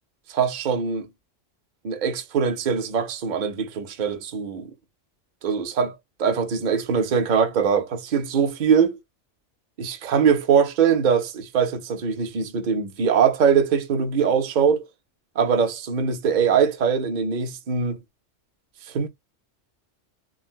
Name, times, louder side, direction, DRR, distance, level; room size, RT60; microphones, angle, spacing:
voice 1, 0.3-1.1 1.8-4.7 5.4-9.0 9.8-14.9 15.4-18.0 18.9-19.1, right 6 dB, 45° right, 0.7 m, -22 dB
3.8 x 2.1 x 2.3 m
omnidirectional pair, 1.3 m